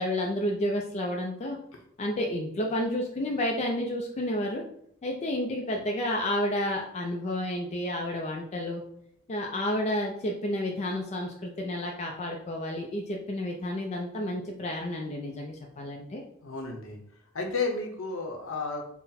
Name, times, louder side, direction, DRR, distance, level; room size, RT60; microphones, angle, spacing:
voice 1, 0.0-1.6 2.0-4.6 5.0-8.8 9.3-16.2, left 1 dB, 30° left, 0 dB, 0.4 m, -30 dB
voice 2, 16.4-17.0 17.3-18.8, left 4 dB, 65° left, 2 dB, 0.8 m, -32 dB
3.9 x 2.1 x 4.1 m, 0.69 s
head